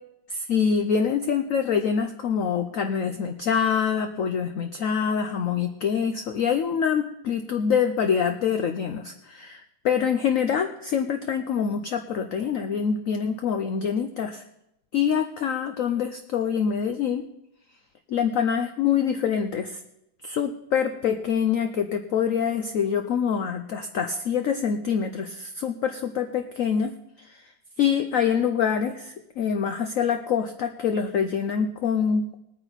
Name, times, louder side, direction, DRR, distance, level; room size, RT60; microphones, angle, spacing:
voice 1, 0.3-14.4 14.9-17.2 18.1-19.8 20.2-26.9 27.2-27.4 27.8-32.4, left 7 dB, 65° left, 6 dB, 0.8 m, -25 dB
19.5 x 9.0 x 4.1 m, 0.83 s
omnidirectional pair, 2.1 m